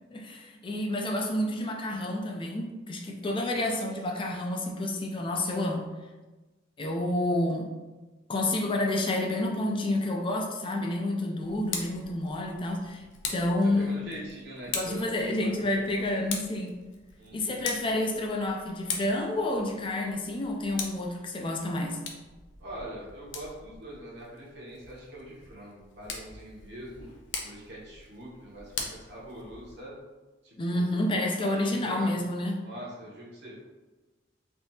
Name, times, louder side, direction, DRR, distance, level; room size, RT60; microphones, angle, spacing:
voice 1, 0.1-5.9 6.8-7.7 8.3-13.0 13.3-14.0 14.7-16.7 17.3-22.0 30.6-32.5, left 1 dB, 25° left, 1 dB, 0.4 m, -29 dB
Tick, 11.4-29.8, left 5 dB, 75° left, 0.5 m, -42 dB
voice 2, 13.6-16.1 17.2-17.6 22.6-27.1 27.4-30.0 30.4-31.1 31.3-32.2 32.6-33.6, right 1 dB, 65° right, -5 dB, 1.0 m, -43 dB
3.4 x 2.7 x 2.7 m, 1.2 s
head